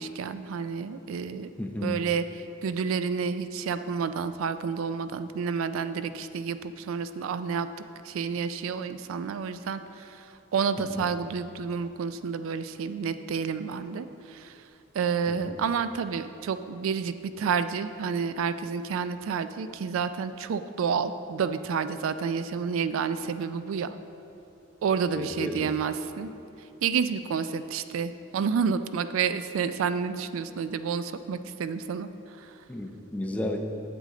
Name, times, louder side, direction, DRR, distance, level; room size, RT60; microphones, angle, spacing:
voice 1, 0.0-1.5 1.8-7.7 8.0-14.6 14.9-24.0 24.8-26.3 26.8-32.1 32.4-32.6, right 6 dB, 75° right, 11 dB, 0.3 m, -30 dB
voice 2, 1.6-2.0 10.8-11.1 15.3-15.6 25.1-25.7 32.7-33.6, left 1 dB, 5° left, 2 dB, 0.6 m, -33 dB
8.2 x 7.6 x 3.8 m, 2.9 s
head